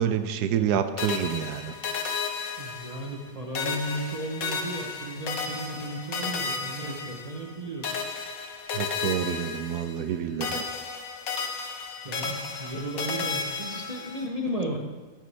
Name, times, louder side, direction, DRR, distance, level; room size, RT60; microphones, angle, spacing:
voice 1, 0.0-1.7 8.7-10.6, right 9 dB, 80° right, 11 dB, 1.2 m, -28 dB
sound 1, 1.0-3.3 3.5-7.5 7.8-10.1 10.4-14.3, left 5 dB, 60° left, 1.3 m, -33 dB
voice 2, 2.6-7.9 12.0-14.8, right 1 dB, 35° right, 0 dB, 0.7 m, -34 dB
12.0 x 8.0 x 3.3 m, 1.3 s
omnidirectional pair, 1.8 m